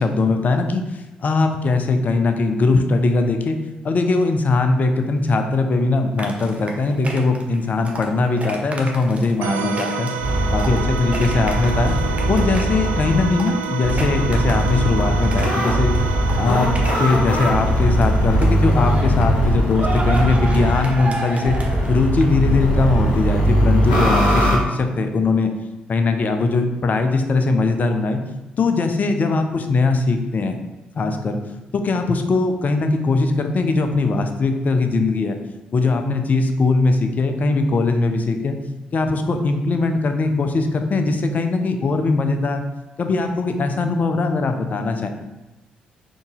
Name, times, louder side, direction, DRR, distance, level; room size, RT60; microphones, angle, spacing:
voice 1, 0.0-3.6 3.8-10.1 10.5-11.9 12.3-16.0 16.4-16.7 17.0-21.6 21.9-25.5 25.9-28.2 28.6-30.6 30.9-31.4 31.7-35.4 35.7-38.6 38.9-42.6 43.0-45.1, left 3 dB, 40° left, 6 dB, 0.5 m, -20 dB
sound 1, 6.2-16.0 16.3-18.0 18.4-23.3, right 2 dB, 30° right, 0.7 m, -32 dB
sound 2, 9.4-18.8, right 7 dB, 65° right, 0.3 m, -30 dB
sound 3, 10.2-13.2 13.8-20.9 21.4-24.6, equal, 80° left, 0.8 m, -20 dB
3.8 x 2.7 x 3.6 m, 1.0 s
figure-of-eight pair, 40°, 4 cm